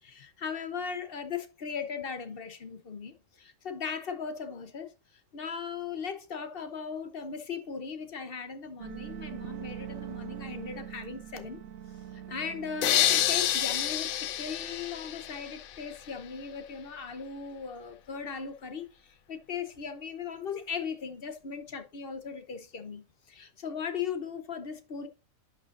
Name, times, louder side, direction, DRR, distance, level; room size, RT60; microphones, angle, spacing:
voice 1, 0.0-4.9 5.3-11.6 12.1-25.1, left 6 dB, 45° left, 1.0 m, -38 dB
sound 1, 8.8-13.4, right 9 dB, 75° right, 1.3 m, -42 dB
sound 2, 12.8-15.8, left 11 dB, 85° left, 1.1 m, -28 dB
11.0 x 6.1 x 2.6 m
omnidirectional pair, 1.4 m